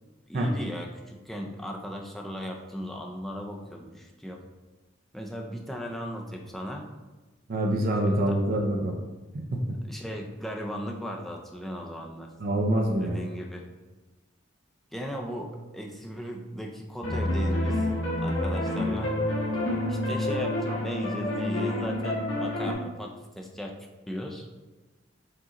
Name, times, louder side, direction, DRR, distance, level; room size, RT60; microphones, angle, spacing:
voice 1, 0.3-4.4 5.1-6.9 8.0-8.4 9.9-12.7 13.0-13.7 14.9-17.9 18.2-19.1 19.9-23.7 24.1-24.5, equal, ahead, 0 dB, 0.4 m, -37 dB
voice 2, 7.5-8.9 9.3-9.8 12.4-13.2, right 1 dB, 50° right, 1 dB, 0.5 m, -26 dB
sound 1, 17.0-22.7, left 1 dB, 75° left, 1.1 m, -28 dB
4.9 x 3.7 x 2.9 m, 1.2 s
head